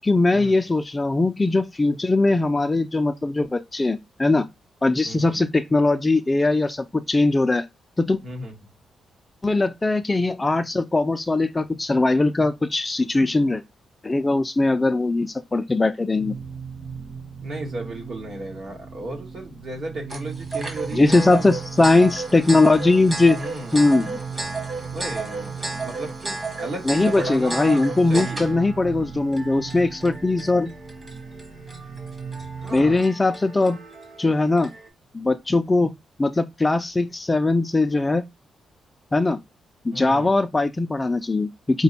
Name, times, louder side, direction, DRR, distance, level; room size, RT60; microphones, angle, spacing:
voice 1, 0.0-4.5 4.8-7.7 8.0-8.2 9.4-13.6 14.0-16.3 20.9-23.4 23.7-24.2 26.9-30.7 32.7-33.8 34.2-34.7 35.1-35.9 36.2-38.2 39.1-39.4 39.8-41.8, left 2 dB, 20° left, 0.3 m, -20 dB
voice 2, 5.0-5.4 8.2-8.6 17.4-21.5 23.3-23.9 24.9-28.6 32.6-33.0 39.9-40.3, right 1 dB, 60° right, 1.7 m, -34 dB
sound 1, 16.0-33.1, right 6 dB, 75° right, 0.8 m, -38 dB
sound 2, 20.1-34.9, right 3 dB, 25° right, 1.3 m, -34 dB
5.1 x 2.2 x 4.1 m
cardioid pair, 120°, 0 cm